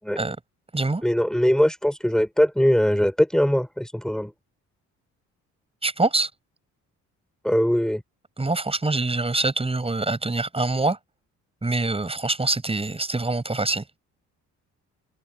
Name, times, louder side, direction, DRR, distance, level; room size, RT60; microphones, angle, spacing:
voice 1, 1.0-4.3 7.4-8.0, equal, ahead, 6.0 m, -21 dB
voice 2, 5.8-6.3 8.4-11.0 11.6-13.8, right 2 dB, 20° right, 7.9 m, -24 dB
cardioid pair, 90°, 30 cm